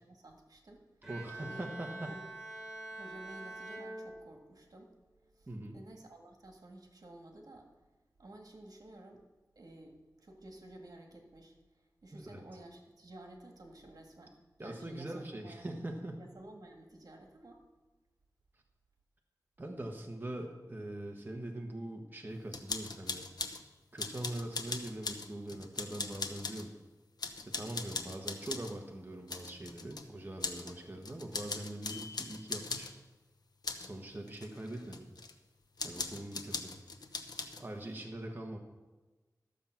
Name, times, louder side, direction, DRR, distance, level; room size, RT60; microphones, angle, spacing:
voice 1, 0.0-1.1 1.4-1.6 1.9-2.2 2.9-5.0 5.3-7.7 8.2-9.3 9.6-15.7 16.2-17.6, right 1 dB, 70° right, 2 dB, 1.8 m, -53 dB
Bowed string instrument, 1.0-4.8, right 2 dB, 10° right, 3.6 m, -46 dB
voice 2, 1.1-2.1 5.5-5.8 12.1-12.4 14.6-16.2 19.6-23.2 23.9-26.7 27.4-32.9 33.8-35.1 35.8-36.8 37.6-38.6, right 1 dB, 30° right, 1 dB, 1.3 m, -42 dB
sound 1, 22.5-23.6 24.0-26.7 27.2-28.8 29.3-30.1 30.4-30.8 31.0-32.9 33.6-33.9 34.3-35.3 35.8-37.7, left 4 dB, 90° left, 0.9 m, -40 dB
13.0 x 7.4 x 5.8 m, 1.2 s
wide cardioid pair, 80°, 7 cm